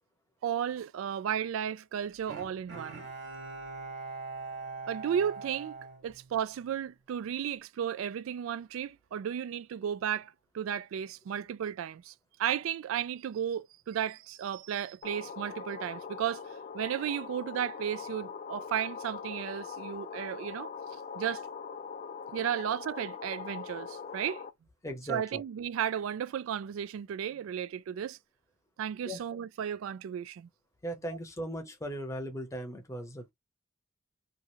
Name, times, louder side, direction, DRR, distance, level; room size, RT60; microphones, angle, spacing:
voice 1, 0.4-3.0 4.9-5.7 6.0-12.1 12.4-16.4 16.7-20.7 21.1-21.4 22.3-24.4 25.1-28.2 28.8-30.5, right 9 dB, 85° right, 0.3 m, -34 dB
Bowed string instrument, 2.3-6.8 7.2-7.3, right 4 dB, 60° right, 1.5 m, -42 dB
sound 1, 15.0-24.5, left 6 dB, 35° left, 0.3 m, -42 dB
voice 2, 24.8-25.4 29.0-29.2 30.8-33.3, equal, 15° left, 0.7 m, -38 dB
3.0 x 2.4 x 2.7 m
head